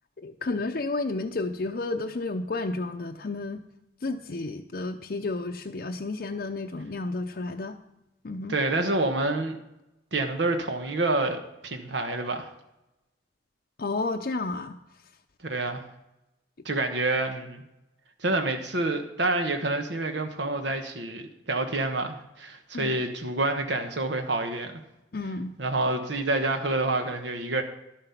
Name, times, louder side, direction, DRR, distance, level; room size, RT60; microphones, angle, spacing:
voice 1, 0.2-3.6 4.0-7.8 8.2-8.6 13.8-14.8 22.7-23.0 25.1-25.5, left 3 dB, 55° left, 3 dB, 0.6 m, -31 dB
voice 2, 8.5-9.6 10.1-12.5 15.5-15.8 16.6-17.6 18.2-24.8 25.6-27.6, right 2 dB, 85° right, 6 dB, 1.1 m, -28 dB
12.0 x 8.9 x 5.8 m, 0.91 s
head